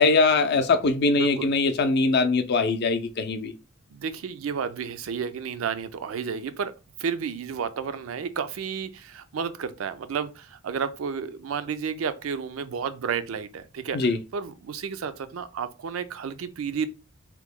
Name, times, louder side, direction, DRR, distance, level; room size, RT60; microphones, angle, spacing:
voice 1, 0.0-3.5 13.9-14.2, left 3 dB, 55° left, 0.5 m, -22 dB
voice 2, 1.1-1.5 3.9-6.7 7.0-16.9, right 6 dB, 80° right, 0.4 m, -31 dB
2.9 x 2.1 x 3.5 m
head